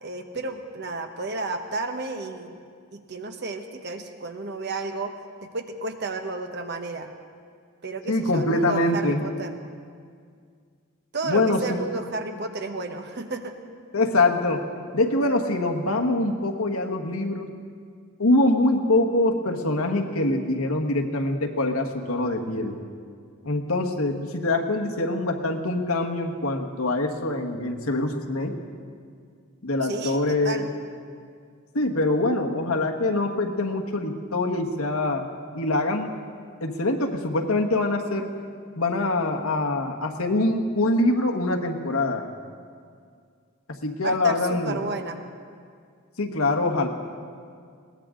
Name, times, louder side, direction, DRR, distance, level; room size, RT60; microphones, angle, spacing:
voice 1, 0.0-2.6 2.9-5.1 5.4-7.1 7.8-9.6 11.1-13.5 29.8-30.7 44.0-45.2, right 3 dB, 50° right, 6 dB, 1.1 m, -32 dB
voice 2, 8.1-9.2 11.2-11.8 13.9-14.6 14.9-17.5 18.2-22.8 23.4-28.5 29.6-30.7 31.7-35.2 35.5-36.1 36.6-38.3 38.8-42.3 43.8-44.8 46.2-46.9, left 2 dB, 85° left, 3 dB, 1.4 m, -24 dB
21.0 x 18.0 x 3.8 m, 2.1 s
head